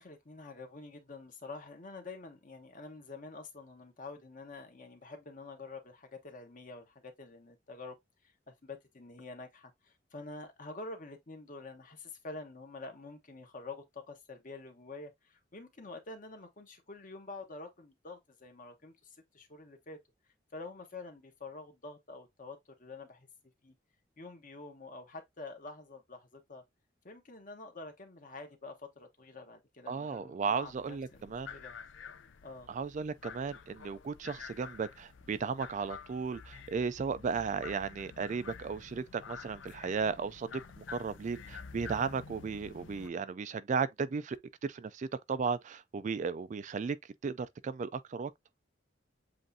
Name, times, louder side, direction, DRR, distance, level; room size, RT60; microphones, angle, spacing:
voice 1, 0.0-8.0 8.5-20.0 20.5-23.3 23.6-23.7 24.2-26.6 27.0-31.8 32.4-32.7, left 3 dB, 45° left, 1.1 m, -47 dB
voice 2, 29.9-31.5 32.7-47.0 47.2-48.3, right 5 dB, 40° right, 0.3 m, -35 dB
sound 1, 30.6-43.1, left 6 dB, 80° left, 0.5 m, -49 dB
7.6 x 2.5 x 2.6 m
head